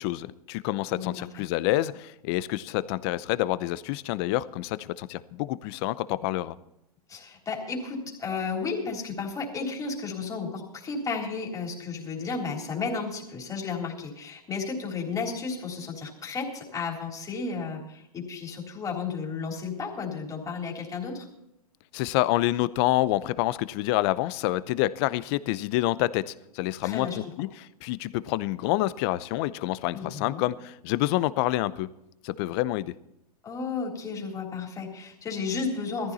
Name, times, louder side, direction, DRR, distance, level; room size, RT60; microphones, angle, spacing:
voice 1, 0.0-6.6 21.9-31.9 32.2-32.9, left 16 dB, 40° left, 17 dB, 0.7 m, -27 dB
voice 2, 0.9-1.4 7.1-21.3 26.8-27.2 29.9-30.5 33.4-36.1, left 4 dB, 15° left, 0 dB, 3.7 m, -33 dB
17.5 x 14.5 x 4.2 m, 0.84 s
hypercardioid pair, 125°, 20 cm